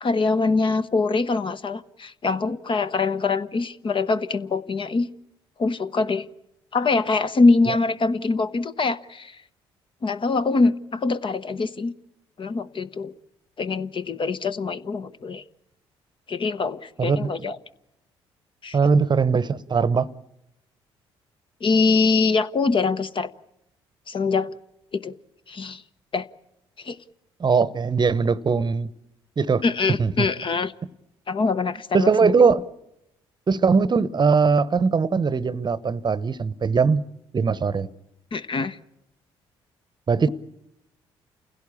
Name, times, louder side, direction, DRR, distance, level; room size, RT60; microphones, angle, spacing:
voice 1, 0.0-5.1 5.6-6.3 6.7-9.3 10.0-11.9 12.4-13.1 13.6-15.4 16.3-17.6 18.6-18.8 21.6-23.3 24.1-24.5 24.9-25.1 25.5-25.8 26.1-26.3 26.8-27.0 29.6-30.7 31.3-32.3 38.3-38.8, left 4 dB, 40° left, 0.9 m, -23 dB
voice 2, 17.0-17.5 18.7-20.1 27.4-28.9 29.4-29.6 30.0-30.3 31.9-32.6 33.5-37.0 37.3-37.9 40.1-40.3, right 5 dB, 35° right, 0.9 m, -20 dB
28.5 x 16.5 x 8.6 m
hypercardioid pair, 50°, 13 cm